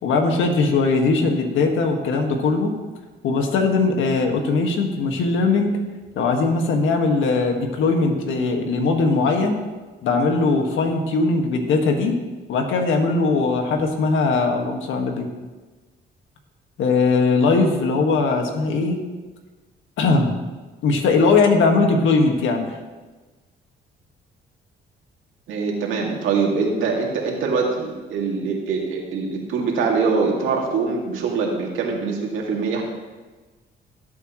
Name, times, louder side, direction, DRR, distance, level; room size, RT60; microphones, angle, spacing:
voice 1, 0.0-2.7 3.2-5.7 6.2-9.5 10.0-12.2 12.5-15.3 16.8-19.0 20.0-20.3 20.8-22.7, left 3 dB, 80° left, 3 dB, 1.8 m, -20 dB
voice 2, 25.5-32.8, right 4 dB, 85° right, -1 dB, 2.5 m, -23 dB
18.0 x 8.2 x 3.1 m, 1.3 s
cardioid pair, 90°, 20 cm